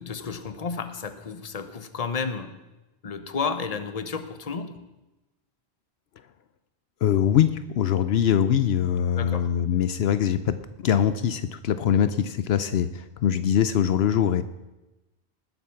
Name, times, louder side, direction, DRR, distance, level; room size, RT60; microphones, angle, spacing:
voice 1, 0.0-2.5 3.0-4.8 9.1-9.5, left 5 dB, 40° left, 10 dB, 1.0 m, -32 dB
voice 2, 7.0-14.4, left 9 dB, 75° left, 12 dB, 0.9 m, -23 dB
19.5 x 8.1 x 5.9 m, 1.0 s
omnidirectional pair, 1.1 m